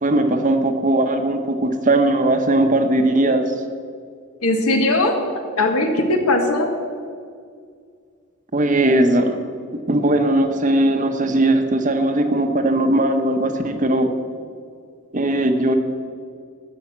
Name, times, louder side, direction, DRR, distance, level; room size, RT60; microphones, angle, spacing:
voice 1, 0.0-3.5 8.5-9.4 9.7-14.1 15.1-15.8, right 1 dB, 35° right, 7 dB, 0.9 m, -19 dB
voice 2, 4.4-5.1 5.6-6.7, left 2 dB, 80° left, 4 dB, 1.6 m, -19 dB
11.5 x 6.4 x 8.5 m, 2.1 s
head